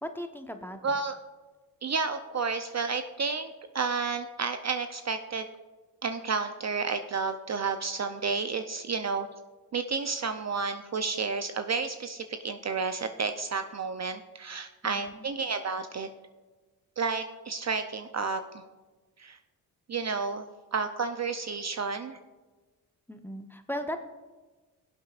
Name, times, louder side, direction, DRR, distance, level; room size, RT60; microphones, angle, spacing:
voice 1, 0.0-1.0 14.8-15.2 23.1-24.0, equal, 5° left, 6 dB, 1.0 m, -37 dB
voice 2, 0.8-1.1 1.8-5.5 6.0-9.3 9.7-16.1 17.0-18.4 19.2-19.4 19.9-20.4 20.7-22.2, right 4 dB, 35° right, 8 dB, 0.6 m, -31 dB
16.5 x 7.8 x 2.5 m, 1.3 s
supercardioid pair, 55°, 45 cm